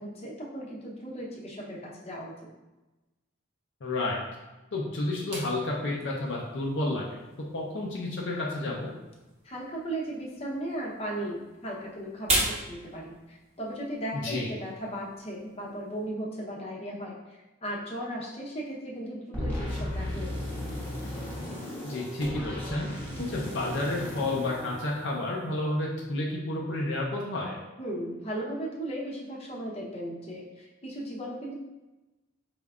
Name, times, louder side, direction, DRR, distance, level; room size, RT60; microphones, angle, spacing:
voice 1, 0.0-2.3 9.4-20.5 27.8-31.5, right 1 dB, 30° left, -3 dB, 0.8 m, -36 dB
voice 2, 3.8-4.2 4.7-7.2 7.5-8.9 14.1-14.5 21.8-22.9 23.2-27.6, left 2 dB, 60° left, -2 dB, 0.6 m, -31 dB
sound 1, 5.3-16.1, right 2 dB, 30° right, 0.9 m, -38 dB
sound 2, 19.3-25.5, left 1 dB, 10° left, 0.9 m, -35 dB
5.1 x 3.5 x 2.4 m, 1.1 s
head